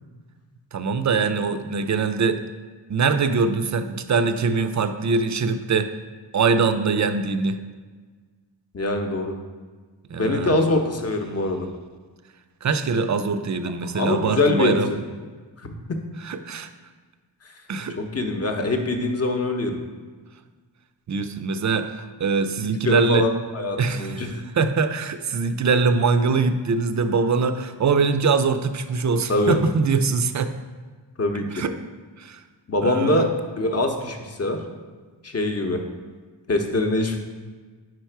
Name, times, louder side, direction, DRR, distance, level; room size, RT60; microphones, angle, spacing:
voice 1, 0.7-2.4 2.9-5.9 6.3-7.6 10.1-10.6 12.6-14.9 16.2-16.7 17.7-18.0 21.1-23.3 23.8-24.3 24.5-30.5 31.5-31.7 32.2-32.4 32.8-33.3, right 4 dB, 45° right, 9 dB, 0.4 m, -23 dB
voice 2, 8.7-9.4 10.1-11.7 13.9-15.0 15.6-15.8 18.0-19.8 22.8-24.3 29.3-29.6 31.2-31.6 32.7-33.3 33.6-34.6 35.2-35.8 36.5-37.2, left 2 dB, 35° left, 4 dB, 0.8 m, -23 dB
4.9 x 4.6 x 4.5 m, 1.4 s
wide cardioid pair, 75°, 44 cm